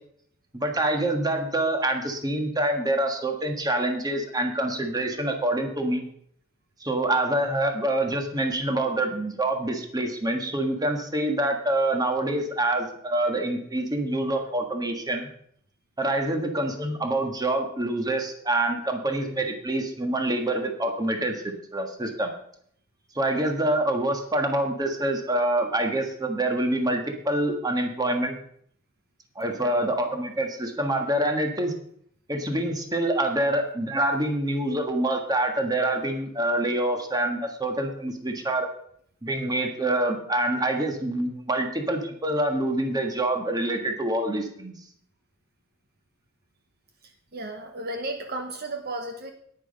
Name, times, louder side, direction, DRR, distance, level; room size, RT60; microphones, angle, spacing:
voice 1, 0.5-6.0 6.8-15.3 16.0-22.3 23.1-28.4 29.3-31.7 32.3-38.7 39.2-44.7, right 1 dB, 20° right, 4 dB, 1.6 m, -26 dB
voice 2, 47.3-49.3, right 2 dB, 50° right, 5 dB, 1.0 m, -34 dB
9.9 x 9.6 x 5.3 m, 0.66 s
head